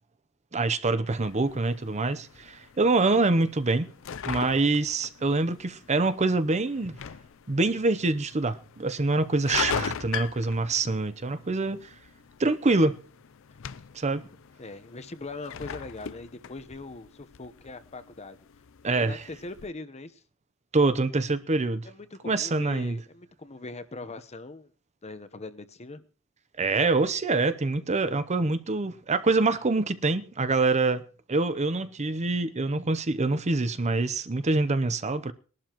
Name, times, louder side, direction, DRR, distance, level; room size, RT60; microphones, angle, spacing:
voice 1, 0.5-3.9 4.2-7.0 7.5-11.9 12.4-13.0 13.9-14.2 18.8-19.2 20.7-21.9 22.2-23.0 26.6-31.0 31.3-35.3, right 3 dB, 35° right, 0.7 m, -25 dB
sound 1, 1.1-19.7, left 7 dB, 65° left, 0.5 m, -40 dB
voice 2, 14.6-18.4 18.9-20.2 21.8-24.7 25.0-26.0, left 3 dB, 30° left, 0.9 m, -41 dB
21.0 x 11.5 x 3.0 m
head